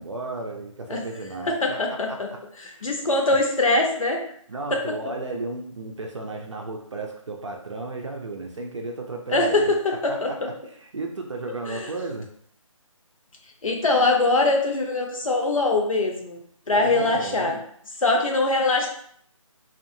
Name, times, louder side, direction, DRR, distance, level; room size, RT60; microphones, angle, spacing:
voice 1, 0.0-1.8 2.1-2.2 2.7-2.9 3.2-3.4 4.5-9.7 10.1-10.3 10.7-12.3 16.7-17.6, right 2 dB, 60° right, 2 dB, 0.5 m, -34 dB
voice 2, 1.5-2.3 2.6-4.2 4.7-4.8 9.3-10.5 11.7-11.9 13.6-16.4 16.7-17.6 18.0-18.9, left 2 dB, 75° left, 1 dB, 0.8 m, -22 dB
2.6 x 2.4 x 2.6 m, 0.63 s
figure-of-eight pair, 170°, 17 cm